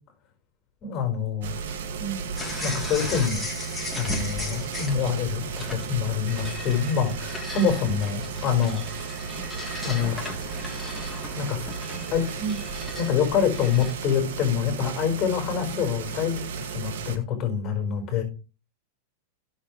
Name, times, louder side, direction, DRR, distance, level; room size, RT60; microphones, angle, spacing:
voice 1, 0.8-1.5 2.0-2.3 2.6-3.5 4.0-8.8 9.8-10.3 11.4-11.7 12.1-12.6 12.9-18.2, left 7 dB, 35° left, 3 dB, 4.9 m, -26 dB
sound 1, 1.4-17.2, right 6 dB, 75° right, 2.2 m, -35 dB
sound 2, 2.4-13.9, left 1 dB, 5° left, 3.3 m, -36 dB
17.0 x 7.4 x 3.3 m, 0.32 s
supercardioid pair, 135°, 0 cm